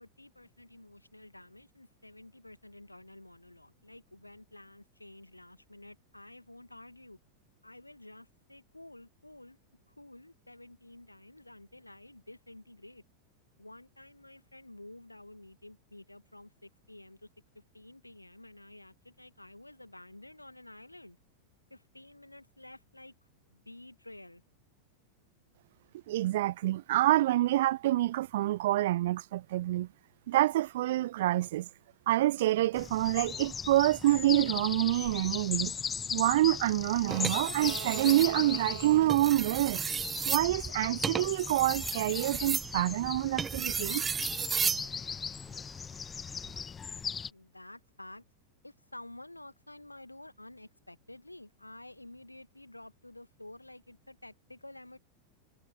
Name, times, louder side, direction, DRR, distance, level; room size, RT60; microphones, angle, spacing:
voice 1, 0.0-7.2 7.6-9.6 9.9-13.0 13.6-17.3 17.5-21.2 21.7-23.1 23.5-24.4 47.3-48.2 48.6-55.0, left 1 dB, 85° left, 2.1 m, -51 dB
voice 2, 26.1-29.9 30.3-31.7 32.1-35.7 36.1-39.8 40.3-44.0, right 15 dB, 55° right, 0.3 m, -27 dB
sound 1, 32.8-47.3, left 6 dB, 20° left, 1.5 m, -38 dB
sound 2, 37.1-38.3 39.0-44.9 46.3-46.6, right 6 dB, 20° right, 0.9 m, -34 dB
figure-of-eight pair, 90°, 0 cm